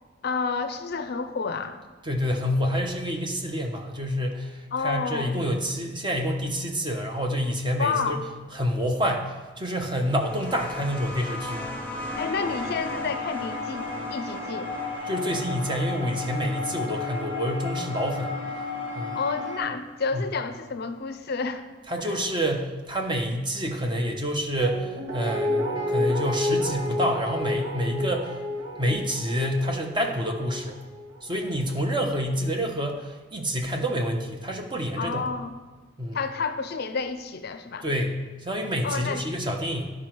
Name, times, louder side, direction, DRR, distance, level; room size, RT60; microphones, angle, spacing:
voice 1, 0.2-1.8 4.7-5.4 7.8-8.2 12.2-13.8 14.1-14.7 19.1-21.6 22.0-22.2 35.0-35.5 36.1-37.9 38.8-39.2, left 4 dB, 55° left, 9 dB, 0.5 m, -30 dB
voice 2, 2.0-8.2 8.5-11.7 15.0-18.4 18.9-19.2 20.1-20.2 21.9-28.3 28.8-30.8 31.2-35.3 36.0-36.2 37.8-39.9, equal, 25° right, 2 dB, 0.9 m, -28 dB
sound 1, 10.0-19.3 20.4-20.5, left 1 dB, 10° left, 0.8 m, -39 dB
sound 2, 12.1-19.6, left 3 dB, 70° right, 2.1 m, -34 dB
Guitar, 24.6-31.6 31.9-32.0, left 1 dB, 85° right, 2.8 m, -30 dB
11.0 x 4.9 x 4.5 m, 1.3 s
head